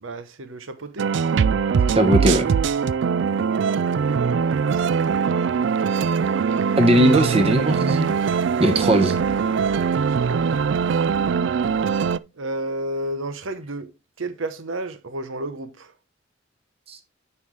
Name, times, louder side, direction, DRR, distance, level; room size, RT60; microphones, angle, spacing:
voice 1, 0.0-1.1 3.9-5.4 9.8-11.0 12.4-13.9 14.2-15.9, right 1 dB, 80° right, 0.8 m, -33 dB
sound 1, 1.0-12.2, right 6 dB, 65° right, 0.3 m, -21 dB
voice 2, 1.9-2.5 6.8-8.1 8.6-9.2 16.9-17.0, equal, 30° right, 1.0 m, -18 dB
9.6 x 5.6 x 3.2 m
head